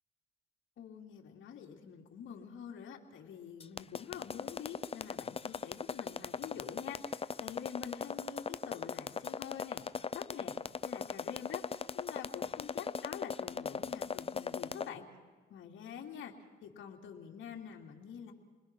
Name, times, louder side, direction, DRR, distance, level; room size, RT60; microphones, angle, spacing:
voice 1, 0.8-9.8 10.1-10.5 10.8-15.1 15.5-16.3 16.6-18.3, left 8 dB, 75° left, 0 dB, 2.9 m, -46 dB
sound 1, 3.6-14.9, left 6 dB, 30° left, 0.6 m, -38 dB
30.0 x 21.0 x 6.1 m, 1.4 s
cardioid pair, 90°, 20 cm